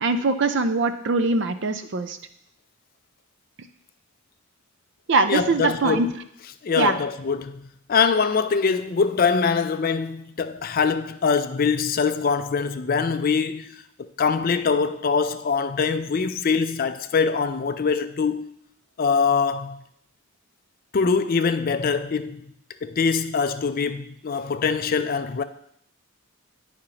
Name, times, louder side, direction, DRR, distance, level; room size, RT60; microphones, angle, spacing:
voice 1, 0.0-2.2 5.1-6.1 6.8-6.9, right 3 dB, 55° right, 0.5 m, -22 dB
voice 2, 5.3-6.1 6.6-13.8 14.2-18.5 19.0-19.8 20.9-22.5 22.8-25.4, left 5 dB, 40° left, 0.4 m, -23 dB
11.0 x 5.0 x 2.9 m
head